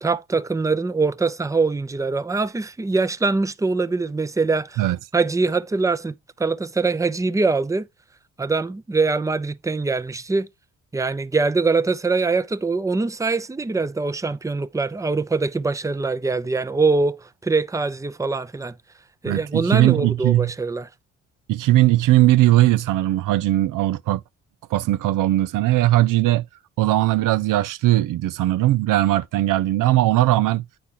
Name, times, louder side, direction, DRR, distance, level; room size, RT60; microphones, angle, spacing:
voice 1, 0.0-4.8 5.1-7.9 8.4-10.5 10.9-18.7 19.2-20.9, right 3 dB, 10° right, 0.6 m, -23 dB
voice 2, 19.3-20.5 21.5-24.2 24.7-26.4 26.8-30.6, right 15 dB, 70° right, 0.5 m, -19 dB
8.5 x 4.3 x 3.7 m
supercardioid pair, 55°, 33 cm